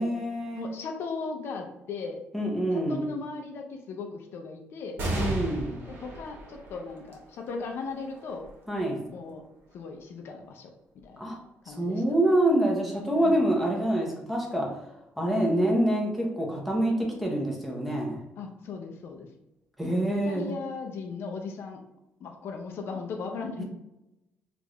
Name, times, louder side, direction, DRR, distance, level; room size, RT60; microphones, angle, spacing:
voice 1, 0.0-0.7 2.3-3.1 5.2-5.8 8.7-9.0 11.2-11.4 11.7-14.8 15.2-18.2 19.8-20.6 23.6-23.7, right 1 dB, ahead, -1 dB, 0.9 m, -26 dB
voice 2, 0.5-2.2 2.7-5.0 5.9-8.5 9.1-9.4 9.7-10.7 11.0-11.2 11.7-12.0 13.2-13.4 18.4-19.3 19.9-20.0 20.2-21.8 22.2-23.6, left 4 dB, 65° left, 3 dB, 0.5 m, -37 dB
sound 1, 5.0-11.9 12.5-12.6 13.7-14.3, right 1 dB, 65° right, 1.1 m, -38 dB
3.4 x 2.5 x 3.2 m, 0.93 s
cardioid pair, 115°, 4 cm